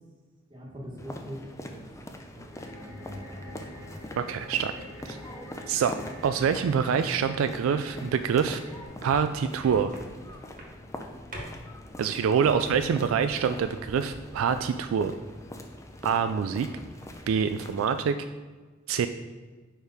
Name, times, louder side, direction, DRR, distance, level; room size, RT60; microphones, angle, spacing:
voice 1, 0.5-1.8 2.3-4.0, equal, 25° right, -3 dB, 1.3 m, -43 dB
sound 1, 1.0-18.0, left 1 dB, 15° left, 0.5 m, -43 dB
sound 2, 2.5-8.9, equal, 80° left, 2.0 m, -46 dB
voice 2, 4.2-4.7 5.0-5.2 5.7-6.0 6.2-8.6 9.0-9.9 12.0-15.1 16.0-16.7 17.3-18.2 18.9-19.1, right 7 dB, 75° right, 10 dB, 0.3 m, -25 dB
sound 3, 7.8-15.3 15.7-16.6 16.8-17.5, right 1 dB, 45° right, 1.4 m, -47 dB
5.1 x 4.5 x 4.8 m, 1.4 s
head